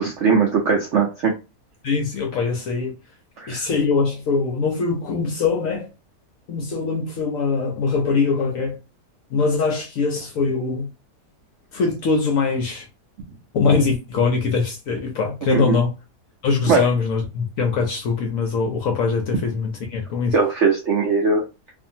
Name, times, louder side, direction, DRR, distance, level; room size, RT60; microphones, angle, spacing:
voice 1, 0.0-1.3 3.4-3.6 15.5-15.8 16.7-16.8 20.3-21.4, right 5 dB, 70° right, 0.7 m, -19 dB
voice 2, 1.8-3.0 3.5-5.9 6.5-8.8 9.3-10.9 11.7-12.9 13.5-15.9 16.4-20.3, left 4 dB, 70° left, 0.8 m, -22 dB
2.6 x 2.5 x 2.6 m
omnidirectional pair, 1.9 m